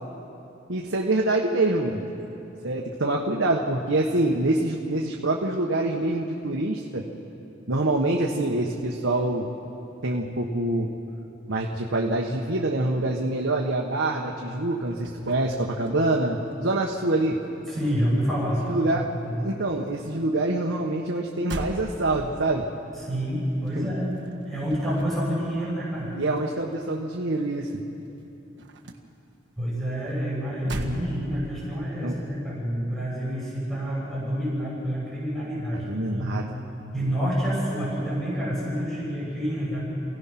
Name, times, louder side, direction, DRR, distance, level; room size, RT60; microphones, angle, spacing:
voice 1, 0.7-2.0 2.6-7.0 7.7-9.5 10.0-10.9 11.5-17.4 18.6-19.0 19.4-22.6 23.7-23.9 26.1-27.7 30.7-31.0 32.0-32.2 35.7-36.4, right 2 dB, 85° right, -1 dB, 1.3 m, -25 dB
sound 1, 14.6-16.5 16.8-18.7 19.0-27.7 28.0-31.7, right 1 dB, 65° right, 1.7 m, -42 dB
voice 2, 17.7-18.6 19.2-19.4 23.0-24.1 24.5-26.1 29.6-36.4 36.9-39.8, equal, ahead, -7 dB, 6.5 m, -28 dB
28.5 x 16.5 x 6.0 m, 2.9 s
head